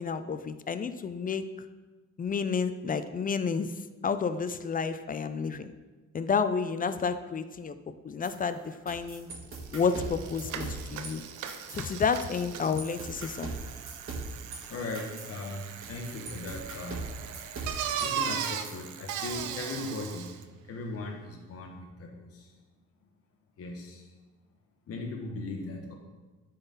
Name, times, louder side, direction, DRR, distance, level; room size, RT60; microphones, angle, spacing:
voice 1, 0.0-1.4 2.2-3.7 4.0-5.7 6.1-7.8 8.0-9.3 9.7-11.2 11.7-13.5, left 5 dB, 30° left, 11 dB, 0.4 m, -30 dB
sound 1, 8.2-11.1 11.5-12.5 12.8-18.1 18.4-19.4, right 3 dB, 45° right, 1.7 m, -41 dB
Bicycle, 9.3-9.4 9.6-20.4, right 8 dB, 90° right, 0.6 m, -38 dB
voice 2, 14.7-17.1 18.0-20.3 20.7-22.5 23.6-24.1 24.9-25.9, left 2 dB, 50° left, 1 dB, 1.1 m, -38 dB
9.6 x 4.0 x 4.0 m, 1.3 s
cardioid pair, 90°, 30 cm